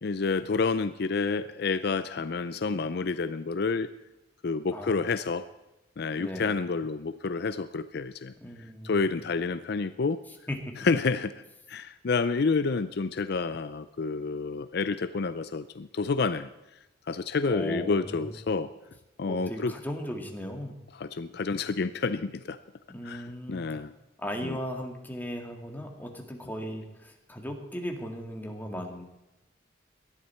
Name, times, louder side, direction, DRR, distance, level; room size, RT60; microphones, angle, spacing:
voice 1, 0.0-3.9 4.4-5.5 6.0-8.3 8.8-10.2 10.8-11.3 11.7-16.5 17.1-18.7 19.2-19.7 21.0-22.6 23.0-23.9 24.4-24.6, left 4 dB, 60° left, 13 dB, 0.5 m, -29 dB
voice 2, 6.2-6.6 8.4-9.2 10.5-10.8 17.4-18.3 19.2-20.7 22.9-23.7 24.2-29.1, equal, 10° left, 2 dB, 1.9 m, -37 dB
18.5 x 12.5 x 4.4 m, 0.98 s
head